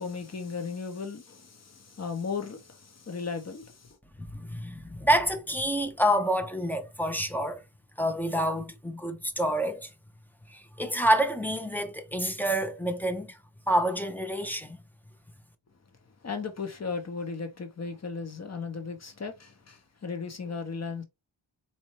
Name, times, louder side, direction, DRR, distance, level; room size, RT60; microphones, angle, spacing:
voice 1, 0.0-4.0 16.2-21.0, left 5 dB, 35° left, 0.9 m, -36 dB
voice 2, 4.2-7.6 8.0-9.9 10.5-13.4 13.7-14.8, equal, 5° left, 0.5 m, -28 dB
4.3 x 2.6 x 3.0 m
wide cardioid pair, 105°, 49 cm